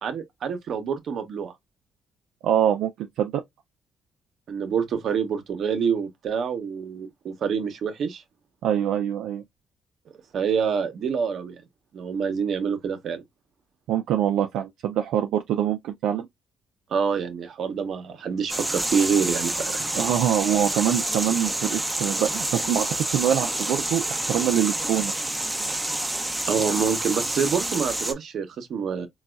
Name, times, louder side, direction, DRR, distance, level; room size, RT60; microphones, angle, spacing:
voice 1, 0.0-1.5 4.5-8.2 10.3-11.6 11.9-13.2 16.9-19.9 26.5-29.1, right 6 dB, 65° right, 0.8 m, -26 dB
voice 2, 2.4-3.4 8.6-9.4 13.9-16.3 20.0-25.1, right 10 dB, 85° right, 0.4 m, -24 dB
sound 1, 18.5-28.1, right 1 dB, 15° right, 0.6 m, -28 dB
3.9 x 2.3 x 2.2 m
cardioid pair, 90°, 0 cm